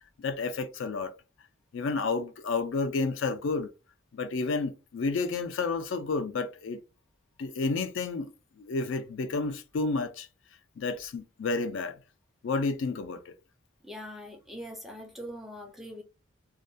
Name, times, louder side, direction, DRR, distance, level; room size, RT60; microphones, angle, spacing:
voice 1, 0.2-1.1 1.7-3.7 4.1-6.8 7.4-8.3 8.6-10.3 10.8-12.0 12.4-13.3, left 4 dB, 65° left, 0.4 m, -30 dB
voice 2, 13.8-16.0, equal, ahead, 0.4 m, -42 dB
2.3 x 2.1 x 2.6 m
head